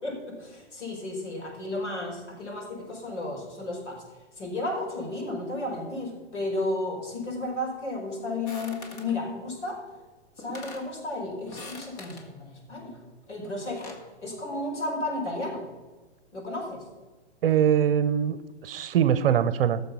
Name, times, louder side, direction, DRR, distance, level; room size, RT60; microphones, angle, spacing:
voice 1, 0.0-4.0 4.4-9.8 10.4-13.0 13.3-13.9 14.2-15.6 16.3-16.8, left 2 dB, 85° left, 0 dB, 5.2 m, -33 dB
sound 1, 8.5-9.2 10.1-10.2 10.4-10.9 11.5-12.3 13.4-14.1, left 2 dB, 35° left, 1.8 m, -43 dB
voice 2, 17.4-18.4 18.6-19.8, right 9 dB, 55° right, 15 dB, 0.8 m, -22 dB
14.5 x 6.8 x 6.9 m, 1.2 s
hypercardioid pair, 145°, 34 cm